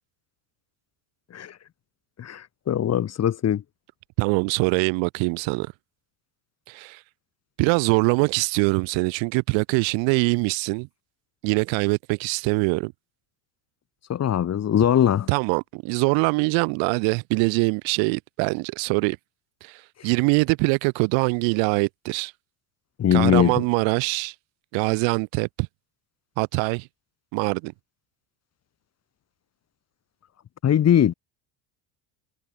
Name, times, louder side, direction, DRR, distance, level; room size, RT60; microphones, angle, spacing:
voice 1, 2.2-3.6 14.1-15.3 23.0-23.6 30.6-31.1, left 10 dB, 30° left, 1.5 m, -21 dB
voice 2, 4.2-5.7 6.7-7.0 7.6-10.9 11.4-12.9 15.3-19.2 19.6-22.3 23.1-24.3 24.7-25.7 26.4-26.9 27.3-27.7, right 31 dB, 70° right, 0.9 m, -23 dB
supercardioid pair, 120°, 48 cm